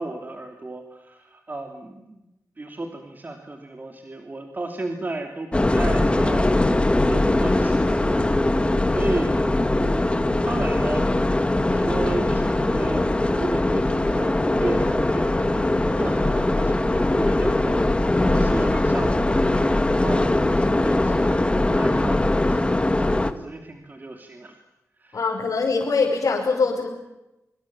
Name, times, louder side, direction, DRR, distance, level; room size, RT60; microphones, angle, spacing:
voice 1, 0.0-2.2 2.6-6.5 7.1-9.3 9.7-11.1 11.6-13.1 13.3-21.4 21.7-24.6 25.0-25.2, right 2 dB, 30° right, 4 dB, 3.0 m, -34 dB
sound 1, 5.5-23.3, left 2 dB, 20° left, 1.9 m, -21 dB
voice 2, 25.1-26.9, left 4 dB, 60° left, -3 dB, 5.8 m, -22 dB
25.5 x 25.5 x 7.4 m, 0.94 s
wide cardioid pair, 110°, 6 cm